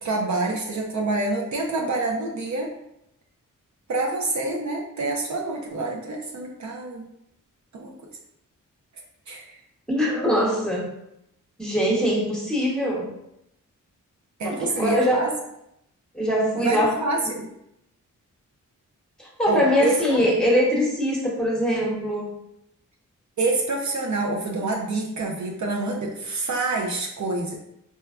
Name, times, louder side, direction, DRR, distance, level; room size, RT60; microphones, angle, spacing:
voice 1, 0.0-2.7 3.9-7.1 7.7-8.0 9.3-9.6 14.4-15.3 16.6-17.5 19.5-19.9 23.4-27.6, right 2 dB, 60° right, -1 dB, 0.6 m, -27 dB
voice 2, 9.9-10.9 11.6-13.1 14.4-15.3 16.1-16.9 19.2-22.3, equal, ahead, -4 dB, 1.0 m, -22 dB
4.2 x 2.2 x 2.4 m, 0.80 s
cardioid pair, 70°, 33 cm